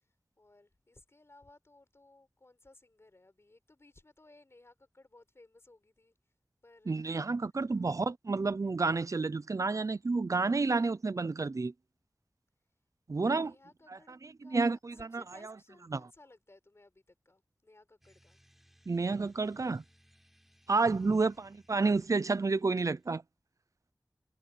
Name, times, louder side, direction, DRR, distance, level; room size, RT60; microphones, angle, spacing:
voice 1, 0.0-6.1 6.6-7.0 7.7-8.0 13.2-14.2 14.4-18.4 21.0-21.3, left 2 dB, 45° left, 4.3 m, -60 dB
voice 2, 6.9-11.7 13.1-13.5 14.4-15.2 15.9-16.0 18.9-19.8 20.7-23.2, right 3 dB, 65° right, 0.7 m, -30 dB
sound 1, 18.0-23.1, equal, 5° right, 5.9 m, -66 dB
wide cardioid pair, 65°, 6 cm